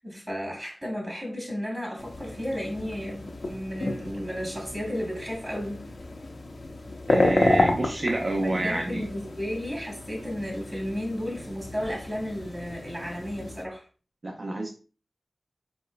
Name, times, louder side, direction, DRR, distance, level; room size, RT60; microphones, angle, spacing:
voice 1, 0.0-5.9 8.4-13.8, equal, 25° right, 2.1 m, -33 dB
sound 1, 2.0-13.6, left 2 dB, 75° left, 0.8 m, -31 dB
voice 2, 7.1-9.1 14.2-14.7, right 2 dB, 60° right, 0.7 m, -28 dB
4.6 x 4.2 x 2.3 m
wide cardioid pair, 60°, 0 cm